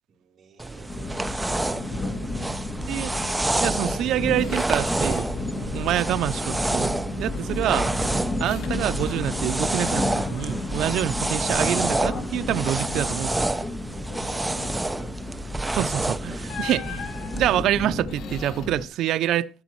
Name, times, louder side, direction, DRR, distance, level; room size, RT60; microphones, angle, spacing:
voice 1, 0.1-2.6 14.2-15.2, right 5 dB, 45° right, 3.2 m, -49 dB
sound 1, 0.6-17.6, right 2 dB, 10° right, 0.6 m, -29 dB
sound 2, 0.9-18.9, left 2 dB, 35° left, 2.6 m, -32 dB
voice 2, 3.5-7.9 8.4-13.5 15.7-17.1 17.3-19.5, right 12 dB, 80° right, 0.5 m, -26 dB
Squeak, 3.6-3.7 4.1-5.5 5.8-6.4 6.8-9.6 9.9-11.8 12.2-12.4 12.8-13.5 15.6-15.8 16.5-18.7, left 8 dB, 85° left, 1.4 m, -43 dB
13.5 x 12.5 x 3.1 m
cardioid pair, 135°, 0 cm